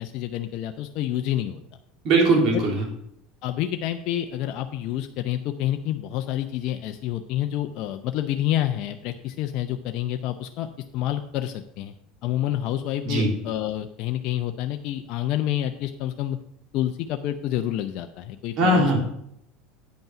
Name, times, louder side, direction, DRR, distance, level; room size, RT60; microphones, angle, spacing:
voice 1, 0.0-1.6 2.5-2.6 3.4-10.7 10.9-11.9 12.2-16.4 16.7-18.9, left 12 dB, 60° left, 6 dB, 0.5 m, -28 dB
voice 2, 2.0-2.8 13.0-13.3 18.6-19.0, right 2 dB, 55° right, -1 dB, 3.4 m, -20 dB
9.1 x 5.4 x 5.8 m, 0.74 s
hypercardioid pair, 90°, 0 cm